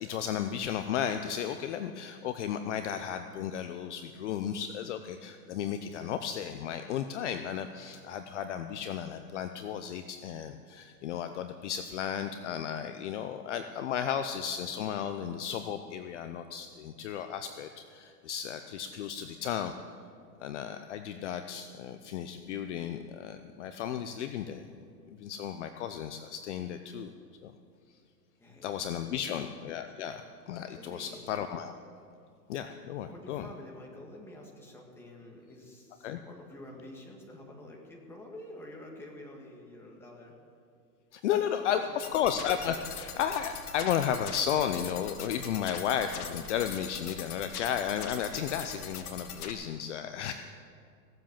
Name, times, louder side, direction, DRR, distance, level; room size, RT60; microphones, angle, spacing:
voice 1, 0.0-19.7 20.4-24.7 25.2-27.1 27.4-27.5 28.6-31.7 32.5-33.5 36.0-36.2 41.1-50.3, left 9 dB, 45° left, 8 dB, 0.7 m, -34 dB
voice 2, 28.4-30.1 30.7-31.2 33.0-40.4 41.3-42.3, left 1 dB, 5° left, -1 dB, 1.8 m, -49 dB
sound 1, 42.0-49.5, left 7 dB, 65° left, 1.5 m, -42 dB
17.5 x 7.7 x 7.4 m, 2.3 s
hypercardioid pair, 140°, 49 cm